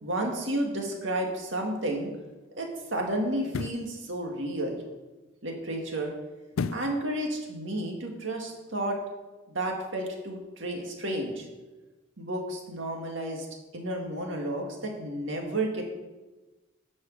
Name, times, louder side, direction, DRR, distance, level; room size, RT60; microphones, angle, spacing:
voice 1, 0.0-2.1 2.6-4.8 5.4-6.1 6.7-9.0 9.5-11.5 12.2-13.5 13.7-15.8, right 1 dB, 60° right, 1 dB, 2.1 m, -31 dB
sound 1, 1.7-1.8 3.4-3.9 6.5-7.0 7.4-7.5, left 5 dB, 90° left, 0.4 m, -32 dB
10.5 x 6.4 x 6.5 m, 1.2 s
head